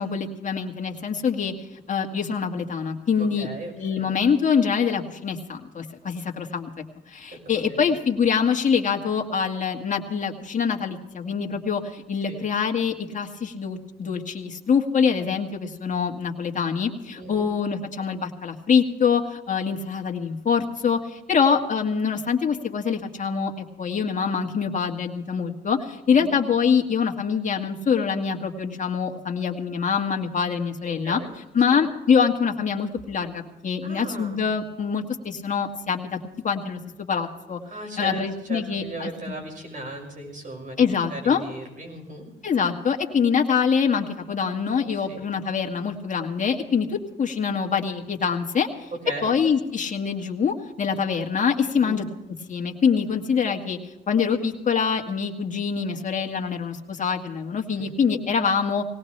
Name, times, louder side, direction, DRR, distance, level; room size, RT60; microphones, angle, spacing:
voice 1, 0.0-1.5 1.9-3.5 3.8-6.7 7.1-23.5 23.8-31.2 31.5-36.2 36.4-36.8 37.1-37.6 38.0-39.3 40.8-41.4 42.4-48.9 49.2-52.0 52.5-53.8 54.1-58.8, left 6 dB, 40° left, 3 dB, 2.0 m, -24 dB
voice 2, 3.2-4.1 7.3-7.8 12.3-12.4 17.1-17.5 26.1-26.4 30.9-31.3 31.7-31.8 33.8-34.4 37.7-42.2 45.1-45.3 49.0-49.3 51.8-52.0 57.8-57.9, right 2 dB, 40° right, 3 dB, 6.3 m, -37 dB
20.0 x 18.0 x 3.4 m, 0.96 s
cardioid pair, 90°, 20 cm